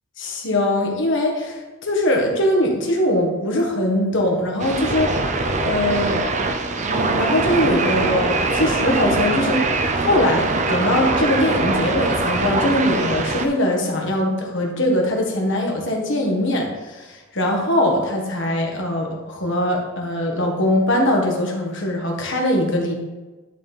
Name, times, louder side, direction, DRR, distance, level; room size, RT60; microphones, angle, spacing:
voice 1, 0.2-5.3 5.6-6.3 6.8-23.0, left 1 dB, 55° left, 0 dB, 1.5 m, -21 dB
sound 1, 4.6-13.5, right 3 dB, 30° right, 0.5 m, -22 dB
11.0 x 4.2 x 3.5 m, 1.2 s
head